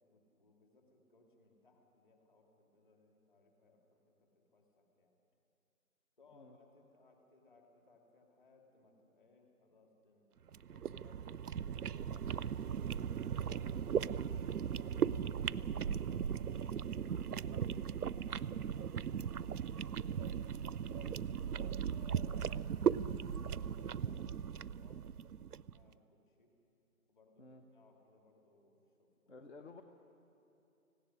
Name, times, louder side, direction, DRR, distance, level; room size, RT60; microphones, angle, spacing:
voice 1, 0.1-5.1 6.2-15.9 16.7-17.0 21.0-22.8 23.1-25.0 25.7-26.6 27.1-29.3, left 3 dB, 35° left, 2 dB, 2.8 m, -67 dB
sound 1, 10.5-25.7, right 8 dB, 80° right, 0.6 m, -37 dB
voice 2, 21.0-21.3 27.4-27.6 29.3-29.8, left 3 dB, 50° left, 5 dB, 1.2 m, -55 dB
18.0 x 16.5 x 9.8 m, 2.7 s
figure-of-eight pair, 160°, 45 cm